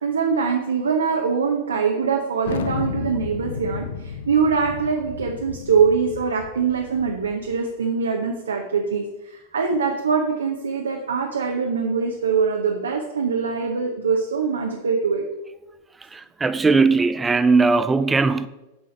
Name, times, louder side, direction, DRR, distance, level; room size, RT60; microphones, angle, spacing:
voice 1, 0.0-15.2, right 5 dB, 70° right, 0.8 m, -23 dB
Thunder, 2.4-7.6, left 7 dB, 60° left, 0.6 m, -33 dB
voice 2, 16.0-18.5, right 4 dB, 15° right, 0.4 m, -19 dB
7.2 x 4.9 x 5.2 m
figure-of-eight pair, 90°, 0 cm